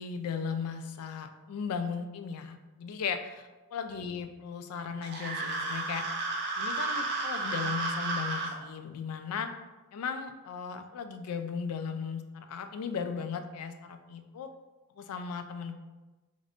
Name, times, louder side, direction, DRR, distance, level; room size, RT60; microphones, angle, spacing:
voice 1, 0.0-3.4 3.7-6.0 6.6-9.5 9.9-14.5 15.0-15.7, left 6 dB, 75° left, 8 dB, 0.3 m, -36 dB
sound 1, 5.0-8.5, right 3 dB, 50° right, 0.5 m, -32 dB
2.5 x 2.4 x 3.4 m, 1.1 s
head